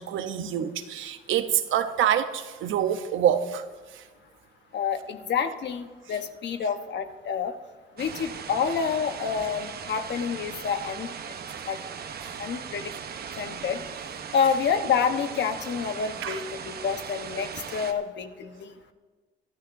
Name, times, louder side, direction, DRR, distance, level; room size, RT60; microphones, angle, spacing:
voice 1, 0.0-3.7 3.9-4.0 11.5-11.6 12.2-12.4 16.2-16.4, right 10 dB, 80° right, 9 dB, 0.9 m, -26 dB
voice 2, 4.7-7.5 8.0-11.1 11.7-11.8 12.4-12.9 13.4-13.8 14.3-18.7, left 6 dB, 60° left, 7 dB, 1.1 m, -28 dB
sound 1, 8.0-17.9, right 7 dB, 50° right, 1.0 m, -38 dB
23.0 x 12.5 x 2.7 m, 1.4 s
cardioid pair, 90°, 20 cm